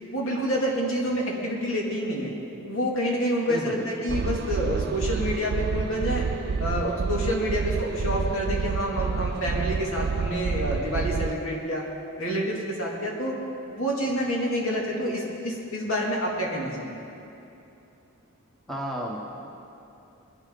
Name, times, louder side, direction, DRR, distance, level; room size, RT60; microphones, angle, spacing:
voice 1, 0.1-2.3 2.6-6.2 6.6-11.8 12.2-13.3 13.7-17.0, equal, 65° left, -3 dB, 2.7 m, -28 dB
voice 2, 3.5-4.1 18.7-19.5, equal, ahead, -2 dB, 1.2 m, -33 dB
sound 1, 4.1-11.3, right 5 dB, 45° right, 0.3 m, -28 dB
21.5 x 11.5 x 3.9 m, 2.9 s
head